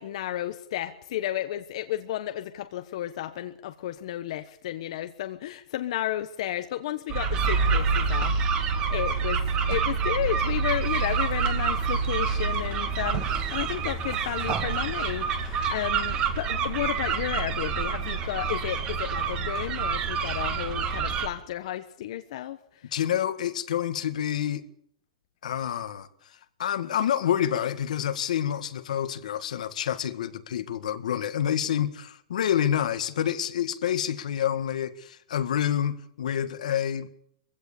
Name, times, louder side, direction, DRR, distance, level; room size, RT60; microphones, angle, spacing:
voice 1, 0.0-9.4 9.7-22.9, left 13 dB, 55° left, 1.1 m, -33 dB
sound 1, 7.1-21.3, right 5 dB, 25° right, 1.8 m, -27 dB
voice 2, 22.9-24.6 25.4-26.1 26.6-37.2, left 10 dB, 75° left, 1.7 m, -28 dB
22.5 x 16.0 x 8.5 m
supercardioid pair, 165°, 4 cm